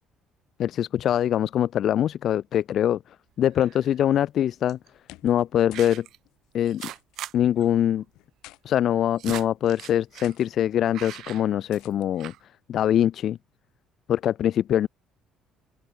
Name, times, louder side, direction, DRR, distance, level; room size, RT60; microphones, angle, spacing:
voice 1, 0.6-3.0 3.4-4.8 5.2-6.1 6.5-6.8 7.3-8.0 8.6-12.3 12.7-13.4 14.1-14.9, left 10 dB, 45° left, 1.2 m, -23 dB
sound 1, 3.5-3.9 4.7-4.9 5.7-6.2 6.6-7.3 7.6-7.7 8.0-8.1 8.8-10.4 10.9-11.9 12.2-12.4, right 13 dB, 60° right, 4.6 m, -40 dB
sound 2, 5.0-5.4 5.7-6.0 6.2-6.4 6.8-7.2 8.1-8.6 9.4-9.6 10.2-10.5 11.7-12.1, left 19 dB, 85° left, 5.8 m, -49 dB
open air
cardioid pair, 155°, 0 cm